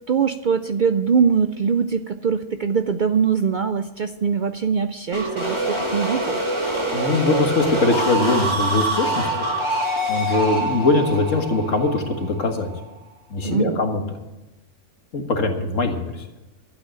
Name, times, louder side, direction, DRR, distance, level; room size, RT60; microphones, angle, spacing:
voice 1, 0.1-6.4 13.4-13.8, right 6 dB, 60° right, 9 dB, 0.5 m, -22 dB
sound 1, 5.1-12.8, right 1 dB, 20° right, 2.5 m, -25 dB
voice 2, 6.9-9.3 10.1-12.7 13.3-14.0 15.1-16.3, left 3 dB, 80° left, 4 dB, 2.0 m, -21 dB
12.0 x 8.7 x 8.9 m, 1.0 s
omnidirectional pair, 1.3 m